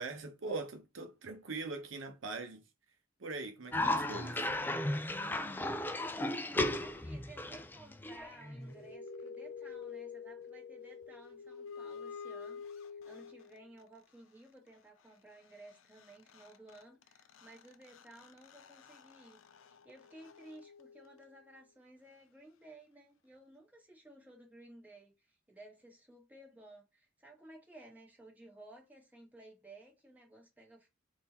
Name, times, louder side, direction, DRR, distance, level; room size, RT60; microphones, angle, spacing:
voice 1, 0.0-2.6 3.2-4.5, right 3 dB, 70° right, 0.8 m, -41 dB
Cough, 3.7-8.8, left 1 dB, 10° left, 0.3 m, -35 dB
voice 2, 5.2-30.9, right 1 dB, 10° right, 1.5 m, -56 dB
sound 1, 8.4-13.8 15.7-15.8 16.0-21.5, left 6 dB, 85° left, 0.5 m, -49 dB
3.7 x 2.6 x 4.2 m
head